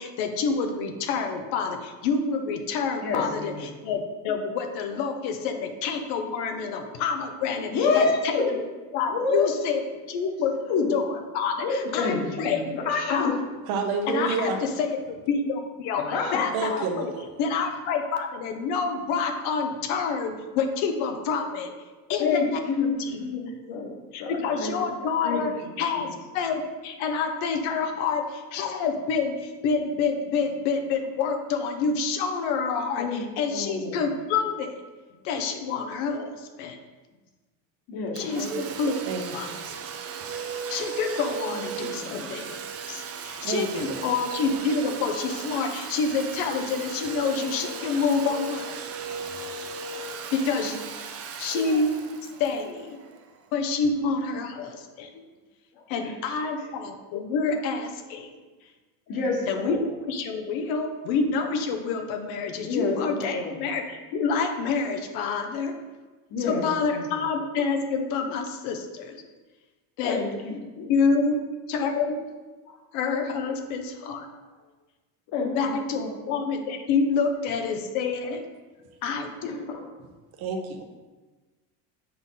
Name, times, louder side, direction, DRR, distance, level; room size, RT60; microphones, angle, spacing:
voice 1, 0.0-8.6 8.9-9.8 10.1-10.6 10.9-11.1 11.3-12.6 13.1-13.3 14.1-17.1 17.4-21.7 22.1-22.8 23.1-23.2 24.1-25.5 25.8-26.1 26.3-34.8 35.2-36.8 38.1-39.0 39.3-39.5 40.7-42.6 42.9-48.8 50.3-50.8 51.4-51.9 52.4-53.0 53.5-55.1 55.9-58.3 59.5-65.8 66.4-69.2 70.0-70.2 70.9-71.4 71.7-72.2 72.9-74.3 75.5-78.4 79.0-79.7, left 5 dB, 80° left, 5 dB, 1.0 m, -28 dB
voice 2, 3.0-3.8 7.7-8.5 9.1-9.6 10.6-10.9 11.6-13.4 16.1-16.4 22.2-22.9 23.2-23.9 24.2-24.9 25.2-25.5 25.9-26.1 33.0-34.0 37.9-38.6 41.5-42.4 50.6-50.7 51.3-51.4 55.1-55.2 55.7-56.1 59.1-59.8 62.6-63.6 66.3-67.1 70.0-70.9 72.7-72.8 75.3-76.2 79.4-79.9, left 4 dB, 55° left, 0 dB, 1.7 m, -28 dB
voice 3, 13.7-14.6 16.5-17.2 39.1-39.2 39.5-39.8 43.4-44.1 80.4-80.8, right 4 dB, 60° right, 4 dB, 1.0 m, -29 dB
Domestic sounds home sounds, 38.2-53.6, right 5 dB, 35° right, 0.6 m, -36 dB
6.9 x 4.0 x 3.9 m, 1.2 s
supercardioid pair, 120°, 42 cm